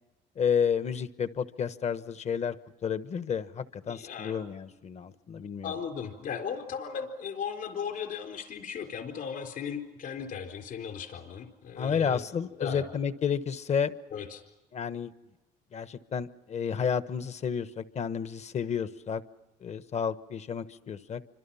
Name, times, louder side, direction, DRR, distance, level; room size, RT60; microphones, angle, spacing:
voice 1, 0.4-2.6 2.8-5.7 11.8-13.9 14.7-15.1 15.7-19.2 19.6-21.2, left 7 dB, 40° left, 12 dB, 1.2 m, -31 dB
voice 2, 3.9-4.4 5.6-12.2 12.6-12.8 14.1-14.4, left 7 dB, 60° left, 4 dB, 4.2 m, -37 dB
29.0 x 25.5 x 5.7 m, 1.0 s
cardioid pair, 110°, 17 cm